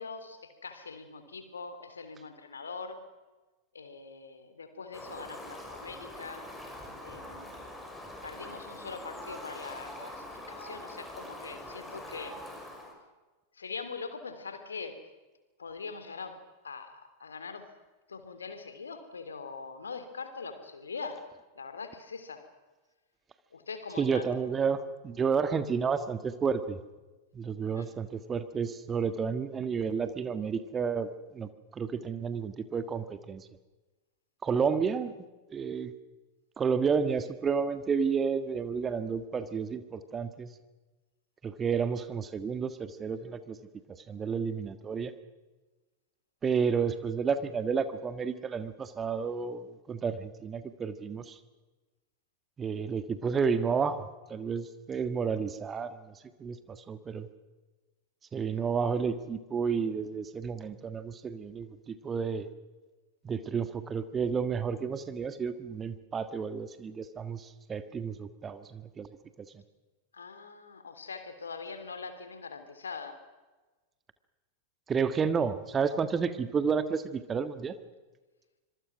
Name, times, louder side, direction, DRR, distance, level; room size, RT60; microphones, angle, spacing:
voice 1, 0.0-3.1 3.7-6.5 7.0-7.7 8.2-12.4 13.5-15.0 15.6-17.7 18.1-21.2 21.5-22.5 23.5-24.3 27.7-27.9 58.5-58.8 70.1-73.2, left 4 dB, 70° left, 10 dB, 3.2 m, -42 dB
Fowl, 4.9-12.9, left 1 dB, 5° left, 6.1 m, -44 dB
voice 2, 24.0-24.8 25.0-26.8 27.3-33.4 34.4-35.1 35.5-35.9 36.6-40.5 41.4-43.6 44.1-45.1 46.4-51.4 52.6-56.1 56.4-57.3 58.3-62.5 63.2-69.1 74.9-77.8, right 6 dB, 20° right, 11 dB, 1.6 m, -31 dB
26.0 x 23.0 x 6.2 m, 1.2 s
figure-of-eight pair, 90°, 0 cm